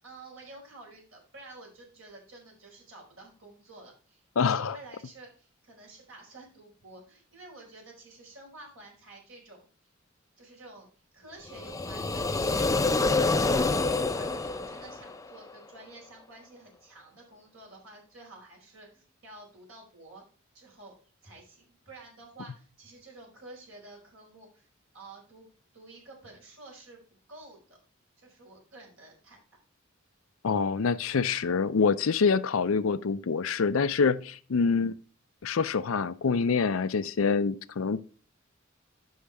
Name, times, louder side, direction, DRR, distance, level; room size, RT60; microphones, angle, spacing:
voice 1, 0.0-9.7 10.4-10.9 11.1-12.7 13.1-20.2 20.5-20.9 21.2-24.7 24.9-27.8 28.2-29.4, right 2 dB, 75° right, 5.0 m, -50 dB
voice 2, 4.4-4.8 30.4-34.9 35.4-38.0, left 5 dB, 85° left, 0.5 m, -26 dB
sound 1, 11.5-15.5, left 3 dB, 15° left, 0.5 m, -27 dB
9.8 x 6.4 x 3.4 m
head